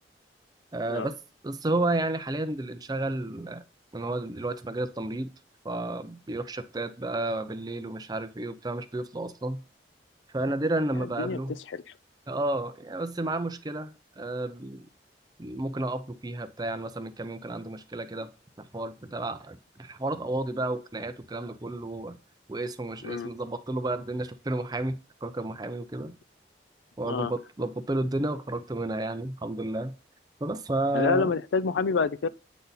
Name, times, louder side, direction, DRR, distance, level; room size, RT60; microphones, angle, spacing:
voice 1, 0.7-1.2 1.4-3.6 3.9-5.3 5.6-9.6 10.3-11.5 12.3-14.9 15.4-18.3 18.6-22.2 22.5-26.1 27.0-29.9 30.4-31.3, right 2 dB, 20° right, 0.5 m, -31 dB
voice 2, 11.0-11.8 23.0-23.3 27.1-27.3 30.9-32.3, left 5 dB, 90° left, 0.4 m, -28 dB
8.3 x 4.0 x 4.0 m
head